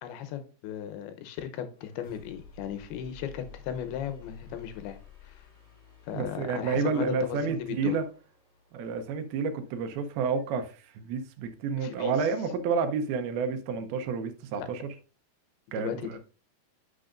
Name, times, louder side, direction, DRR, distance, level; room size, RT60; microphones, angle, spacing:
voice 1, 0.0-5.0 5.3-5.4 6.1-7.9 11.8-12.2 14.5-14.7 15.8-16.2, left 9 dB, 85° left, 2.7 m, -37 dB
sound 1, 1.7-11.5, left 6 dB, 15° left, 4.1 m, -53 dB
voice 2, 6.1-8.0 8.7-14.9 15.7-16.2, right 5 dB, 80° right, 2.7 m, -30 dB
10.0 x 5.7 x 2.5 m
omnidirectional pair, 4.4 m